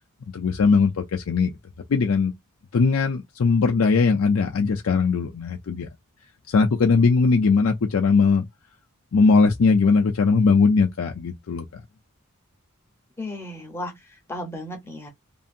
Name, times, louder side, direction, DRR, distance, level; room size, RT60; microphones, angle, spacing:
voice 1, 0.3-1.5 1.9-2.3 2.7-5.9 6.5-8.5 9.1-11.8, left 4 dB, 75° left, 0.4 m, -20 dB
voice 2, 13.2-15.1, left 1 dB, 10° left, 0.8 m, -35 dB
2.7 x 2.6 x 2.4 m
head